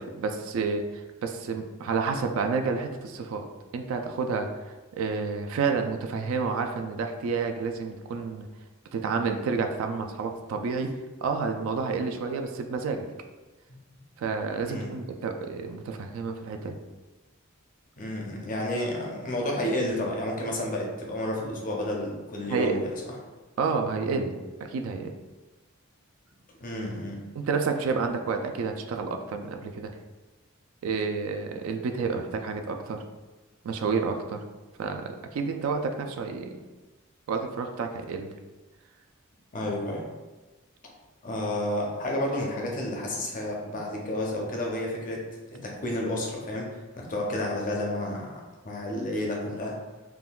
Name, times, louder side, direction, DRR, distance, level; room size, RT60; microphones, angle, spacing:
voice 1, 0.2-3.4 3.7-8.5 8.9-10.9 11.2-13.1 14.2-16.8 22.5-22.8 23.6-24.4 24.7-25.1 27.3-29.9 30.8-33.0 33.6-34.4 34.8-35.0 35.3-36.5 37.3-38.4, right 4 dB, 75° right, 6 dB, 0.3 m, -29 dB
voice 2, 14.6-14.9 18.0-23.0 26.6-27.2 39.5-40.1 41.2-45.2 45.5-49.8, left 1 dB, 40° left, -1 dB, 0.5 m, -31 dB
3.6 x 2.2 x 2.3 m, 1.2 s
head